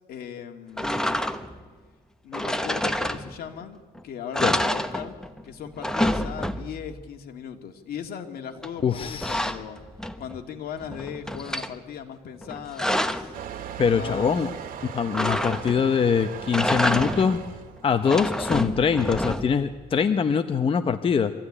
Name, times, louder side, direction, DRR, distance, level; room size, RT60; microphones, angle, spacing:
voice 1, 0.1-1.2 2.2-5.1 5.4-9.8 10.2-13.3 14.0-14.4, left 8 dB, 65° left, 4 dB, 2.3 m, -38 dB
sound 1, 0.8-1.6 2.3-3.6 3.9-4.0 4.3-5.4 5.7-6.9 8.6-10.4 10.8-11.7 12.4-13.4 15.1-15.9 16.4-17.4 17.9-19.7, left 1 dB, 5° left, 1.1 m, -28 dB
voice 2, 8.8-9.5 13.8-14.5 14.8-17.4 17.8-21.3, left 6 dB, 30° left, 8 dB, 0.8 m, -23 dB
Motor vehicle (road) / Engine starting / Accelerating revving vroom, 13.3-19.2, right 8 dB, 55° right, 2.1 m, -39 dB
24.5 x 15.0 x 9.9 m, 1.4 s
cardioid pair, 110°, 17 cm